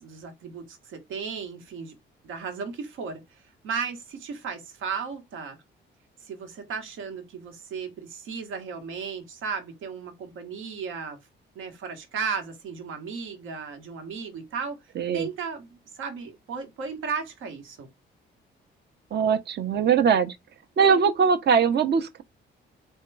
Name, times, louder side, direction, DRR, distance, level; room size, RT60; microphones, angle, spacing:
voice 1, 0.0-1.9 2.2-5.6 6.2-11.2 11.5-14.8 15.1-17.9, right 5 dB, 85° right, 1.2 m, -35 dB
voice 2, 15.0-15.3 19.1-20.4 20.8-22.2, right 6 dB, 60° right, 0.8 m, -21 dB
3.6 x 2.3 x 4.5 m
cardioid pair, 90°, 20 cm